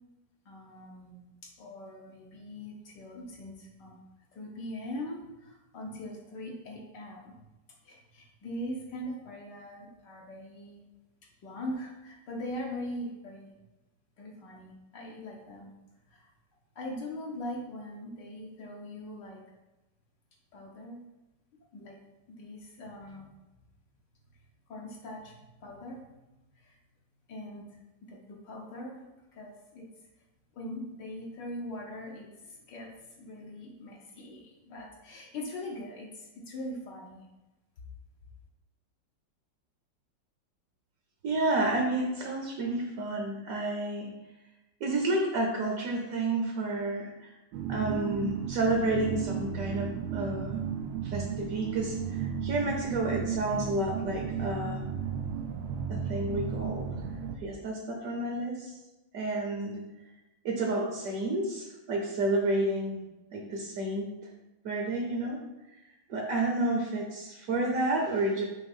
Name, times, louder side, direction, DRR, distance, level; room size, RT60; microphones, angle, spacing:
voice 1, 0.4-4.0 4.3-7.4 7.8-10.8 11.4-13.5 14.2-15.7 16.1-16.3 16.7-19.4 20.5-21.0 21.7-22.0 22.3-23.3 24.7-25.3 25.6-26.1 26.6-26.8 27.3-29.9 30.5-37.2, left 1 dB, 70° left, -2 dB, 1.6 m, -41 dB
voice 2, 41.2-44.1 44.8-47.3 47.7-50.6 51.1-54.8 55.9-56.9 57.4-58.7 59.1-59.8 60.4-63.0 63.3-64.1 64.6-65.4 66.1-68.4, right 2 dB, 55° right, 1 dB, 1.1 m, -30 dB
sound 1, 47.5-57.4, right 7 dB, 85° right, 1.4 m, -34 dB
6.2 x 2.9 x 5.4 m, 1.0 s
omnidirectional pair, 2.0 m